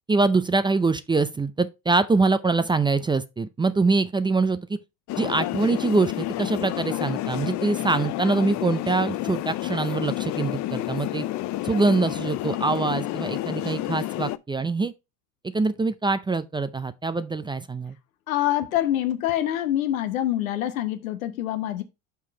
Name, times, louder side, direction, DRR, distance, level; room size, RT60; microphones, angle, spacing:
voice 1, 0.1-4.8 5.2-11.2 11.6-14.9 15.5-18.0, right 3 dB, 10° right, 0.4 m, -24 dB
sound 1, 5.1-14.4, left 15 dB, 45° left, 0.5 m, -30 dB
voice 2, 18.3-21.8, left 12 dB, 85° left, 1.0 m, -25 dB
5.8 x 4.7 x 4.5 m
hypercardioid pair, 85°, 40 cm